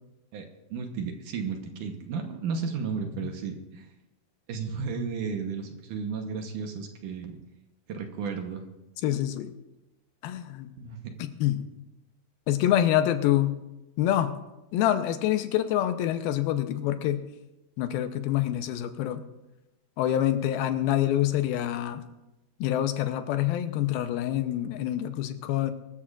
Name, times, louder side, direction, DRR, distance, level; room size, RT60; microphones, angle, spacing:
voice 1, 0.3-3.9 4.5-7.3 7.9-8.6 10.8-11.1, right 5 dB, 70° right, 4 dB, 2.2 m, -33 dB
voice 2, 9.0-9.5 10.2-10.7 11.2-11.6 12.5-13.6 14.0-14.4 14.7-17.3 17.8-19.2 20.0-22.0 22.6-25.7, left 12 dB, 90° left, 9 dB, 2.6 m, -26 dB
23.0 x 13.5 x 2.5 m, 0.99 s
omnidirectional pair, 4.3 m